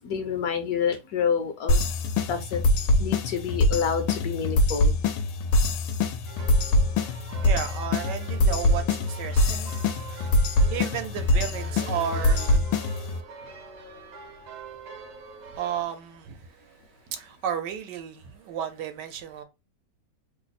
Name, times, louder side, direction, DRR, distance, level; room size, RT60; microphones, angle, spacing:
voice 1, 0.0-1.8 2.3-2.6 3.0-4.9, left 7 dB, 70° left, 0.9 m, -28 dB
sound 1, 1.7-13.2, left 1 dB, 90° left, 1.2 m, -24 dB
sound 2, 6.2-15.8, right 4 dB, 55° right, 0.7 m, -44 dB
voice 2, 7.4-9.7 10.1-12.6 15.5-19.4, right 8 dB, 80° right, 1.2 m, -33 dB
3.1 x 2.0 x 3.9 m
omnidirectional pair, 1.9 m